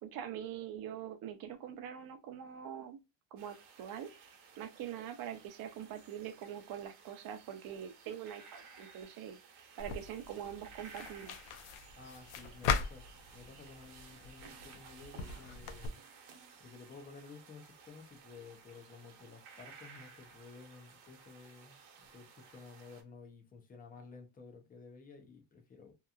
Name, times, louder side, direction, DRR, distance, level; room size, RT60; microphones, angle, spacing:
voice 1, 0.0-3.0 3.3-4.1 4.6-9.4 9.8-11.4, right 9 dB, 45° right, 0.5 m, -44 dB
sound 1, 3.4-23.0, right 5 dB, 85° right, 0.9 m, -57 dB
sound 2, 9.8-15.9, left 6 dB, 85° left, 0.6 m, -40 dB
voice 2, 12.0-16.0 16.6-26.0, left 4 dB, 20° left, 0.4 m, -54 dB
2.8 x 2.2 x 2.3 m
cardioid pair, 165°, 50 cm